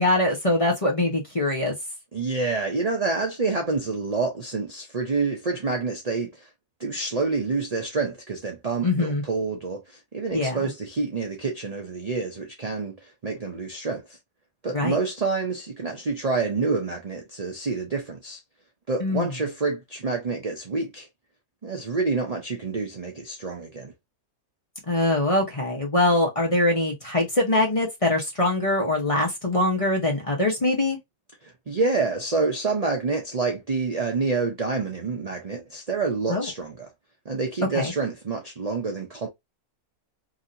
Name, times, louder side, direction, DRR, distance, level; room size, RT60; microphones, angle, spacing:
voice 1, 0.0-1.7 8.8-9.2 10.3-10.6 14.7-15.0 19.0-19.3 24.9-31.0 36.3-36.4 37.7-37.9, left 2 dB, 25° left, 0.9 m, -23 dB
voice 2, 2.1-6.5 6.8-14.2 14.6-18.4 18.9-21.1 21.6-23.9 31.4-36.9 37.2-39.3, right 4 dB, 45° right, 0.5 m, -28 dB
3.0 x 2.7 x 2.5 m
omnidirectional pair, 1.6 m